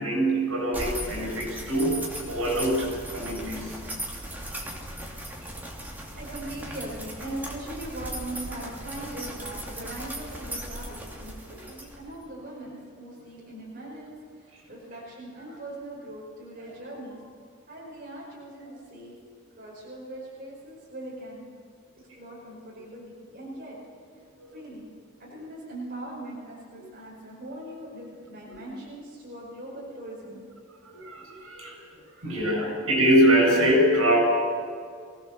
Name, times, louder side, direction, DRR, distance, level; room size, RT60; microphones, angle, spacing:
voice 1, 0.0-3.9 24.4-24.5 30.8-34.2, right 1 dB, 75° right, 0 dB, 7.7 m, -24 dB
sound 1, 0.7-12.2, right 1 dB, 10° right, 2.8 m, -38 dB
voice 2, 6.1-17.2 17.7-19.2 19.6-21.4 22.2-24.1 24.5-24.9 25.2-30.4 32.0-32.8, right 1 dB, 40° right, -5 dB, 5.2 m, -40 dB
24.0 x 17.5 x 6.9 m, 2.2 s
head